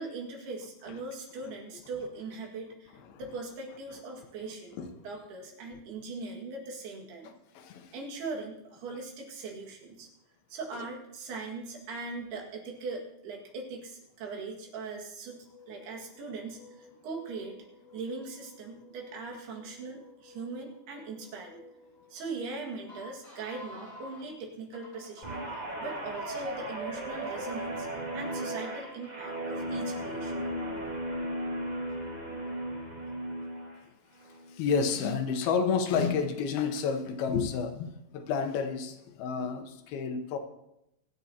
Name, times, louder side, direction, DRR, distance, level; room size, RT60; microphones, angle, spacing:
voice 1, 0.0-4.8 5.0-7.3 7.9-10.1 10.5-17.6 17.9-21.6 22.1-27.9 28.1-30.5, right 3 dB, 85° right, 0 dB, 4.0 m, -40 dB
voice 2, 7.5-7.9 34.5-40.4, left 6 dB, 80° left, 6 dB, 2.8 m, -30 dB
sound 1, 15.2-24.3 24.7-25.4 25.9-26.7 27.2-27.8 28.3-29.1, left 2 dB, 20° left, 5.1 m, -53 dB
Guitar, 25.2-33.8 34.2-34.5, right 1 dB, 50° right, 0.5 m, -36 dB
24.5 x 8.4 x 2.9 m, 0.85 s
omnidirectional pair, 4.4 m